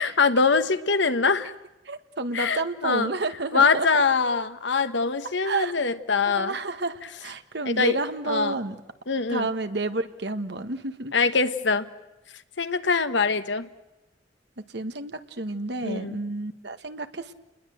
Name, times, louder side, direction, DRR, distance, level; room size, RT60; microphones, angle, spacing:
voice 1, 0.0-1.5 2.3-3.1 3.5-6.6 7.6-8.0 8.2-8.6 9.1-9.5 11.1-11.9 12.6-13.7 15.8-16.2, left 4 dB, 75° left, 11 dB, 1.3 m, -23 dB
voice 2, 1.8-3.9 5.4-5.7 6.3-8.7 9.3-11.1 14.7-17.3, right 2 dB, 65° right, 9 dB, 1.6 m, -30 dB
29.5 x 21.0 x 7.9 m, 1.0 s
head